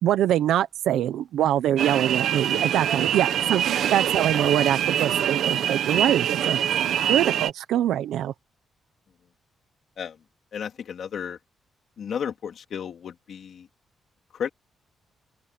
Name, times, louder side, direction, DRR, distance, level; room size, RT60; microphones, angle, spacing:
voice 1, 0.0-3.6 3.9-8.3, right 11 dB, 90° right, 0.9 m, -24 dB
sound 1, 1.8-7.5, right 10 dB, 65° right, 1.3 m, -24 dB
voice 2, 10.5-11.4 12.0-13.7 14.3-14.5, left 7 dB, 50° left, 3.5 m, -33 dB
open air
cardioid pair, 170°, 0 cm